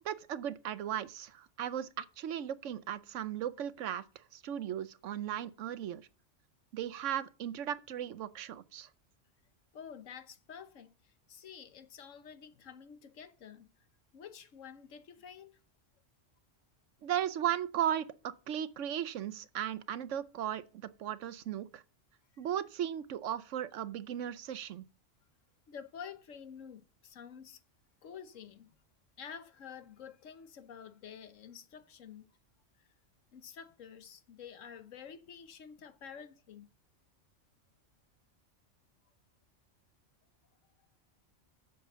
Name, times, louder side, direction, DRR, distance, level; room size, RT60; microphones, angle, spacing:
voice 1, 0.0-4.0 4.3-6.0 6.7-8.9 17.0-21.8 22.4-24.8, right 10 dB, 80° right, 1.1 m, -36 dB
voice 2, 9.7-13.7 14.1-15.6 25.7-27.6 28.0-28.8 29.2-32.3 32.8-32.9 33.3-36.7, left 7 dB, 85° left, 1.3 m, -49 dB
8.4 x 6.9 x 6.7 m
omnidirectional pair, 1.3 m